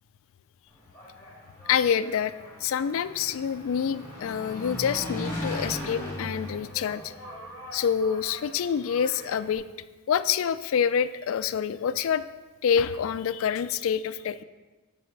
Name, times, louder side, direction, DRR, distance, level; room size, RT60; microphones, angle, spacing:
Engine, 0.7-9.6, left 1 dB, 10° left, 1.6 m, -39 dB
voice 1, 1.7-2.3 2.6-7.1 7.7-9.7 10.1-12.2 12.6-14.4, left 7 dB, 60° left, 14 dB, 0.3 m, -27 dB
6.8 x 4.2 x 6.5 m, 1.2 s
head